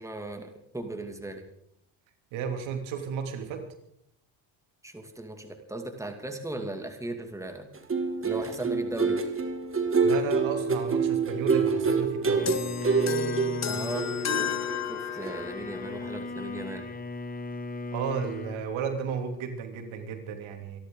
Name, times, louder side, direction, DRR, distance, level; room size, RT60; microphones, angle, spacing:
voice 1, 0.0-1.4 4.8-7.7 8.2-9.2 13.7-14.1 14.4-14.6 14.9-16.9, right 2 dB, 5° right, 5 dB, 2.4 m, -37 dB
voice 2, 2.3-3.6 10.0-12.5 17.9-20.8, right 6 dB, 75° right, 4 dB, 3.1 m, -33 dB
sound 1, 7.8-14.9 15.2-15.4, right 4 dB, 25° right, 2.2 m, -27 dB
Bowed string instrument, 12.4-18.6, left 3 dB, 20° left, 1.6 m, -36 dB
sound 2, 12.5-15.7, left 8 dB, 35° left, 1.0 m, -33 dB
28.0 x 11.0 x 3.9 m, 0.74 s
cardioid pair, 90°, 47 cm